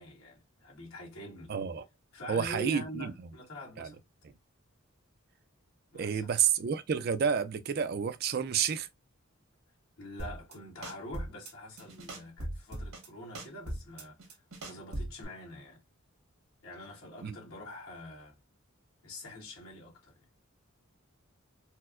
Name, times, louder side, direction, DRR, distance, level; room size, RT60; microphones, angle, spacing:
voice 1, 0.0-1.5 2.1-4.0 5.9-6.4 10.0-15.8 16.6-18.4 19.0-20.3, left 1 dB, 80° left, 1.5 m, -45 dB
voice 2, 1.5-1.8 2.3-3.1 3.8-3.9 5.9-8.9 17.2-17.4, right 7 dB, 45° right, 0.3 m, -30 dB
sound 1, 10.2-10.5 10.8-11.5 11.8-13.1 13.3-15.2, right 1 dB, 85° right, 1.3 m, -39 dB
4.3 x 2.0 x 2.4 m
head